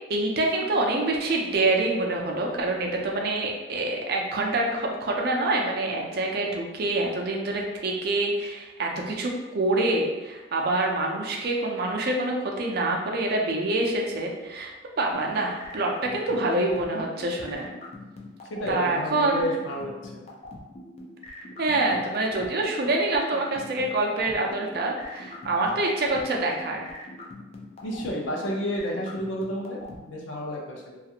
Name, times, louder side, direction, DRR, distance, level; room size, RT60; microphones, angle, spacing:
voice 1, 0.1-17.7 18.7-19.5 21.6-26.9, right 2 dB, 55° right, 0 dB, 0.4 m, -26 dB
sound 1, 15.1-30.0, left 2 dB, 35° left, 0.4 m, -42 dB
voice 2, 18.5-20.3 27.8-31.0, equal, 85° left, -1 dB, 0.6 m, -31 dB
2.4 x 2.4 x 2.8 m, 1.2 s
head